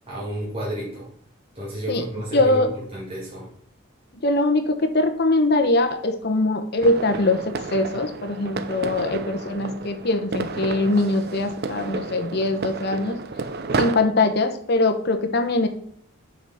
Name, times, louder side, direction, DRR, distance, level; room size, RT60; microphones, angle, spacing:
voice 1, 0.1-1.1 1.6-3.5, right 1 dB, 25° right, -7 dB, 2.0 m, -31 dB
voice 2, 2.3-2.7 4.2-13.2 13.8-15.7, left 2 dB, 50° left, 6 dB, 0.9 m, -22 dB
sound 1, 6.8-14.0, right 3 dB, 50° right, 0.5 m, -31 dB
5.8 x 4.9 x 5.7 m, 0.65 s
head